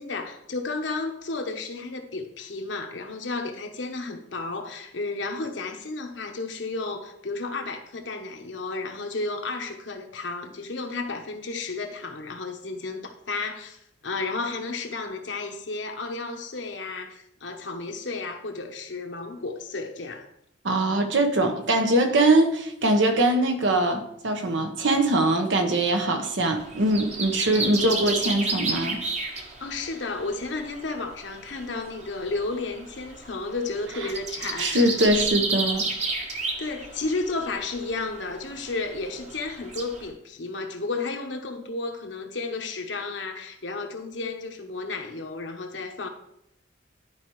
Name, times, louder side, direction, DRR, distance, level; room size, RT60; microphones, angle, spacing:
voice 1, 0.0-20.3 29.6-34.9 36.3-46.1, left 3 dB, 75° left, 1.1 m, -32 dB
voice 2, 20.6-29.0 34.6-35.9, right 1 dB, 85° right, 1.1 m, -22 dB
sound 1, 26.5-40.1, right 3 dB, 40° right, 1.1 m, -33 dB
12.0 x 4.8 x 3.1 m
head